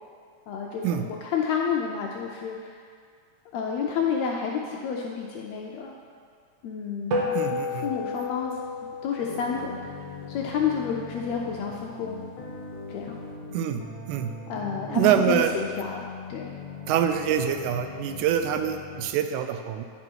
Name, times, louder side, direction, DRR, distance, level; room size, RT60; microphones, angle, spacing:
voice 1, 0.5-2.8 3.5-5.9 6.6-7.3 7.8-8.5 9.0-12.2 12.9-13.2 14.5-16.0 16.3-16.5, left 6 dB, 80° left, 0 dB, 1.5 m, -30 dB
sound 1, 7.1-11.8, left 3 dB, 70° right, 1.6 m, -32 dB
voice 2, 7.3-7.9 13.5-13.8 14.1-14.3 14.9-15.5 16.9-19.8, right 9 dB, 90° right, 7 dB, 2.1 m, -25 dB
sound 2, 9.2-19.1, left 5 dB, 55° left, 1.7 m, -40 dB
10.5 x 4.3 x 4.5 m, 2.1 s
omnidirectional pair, 3.5 m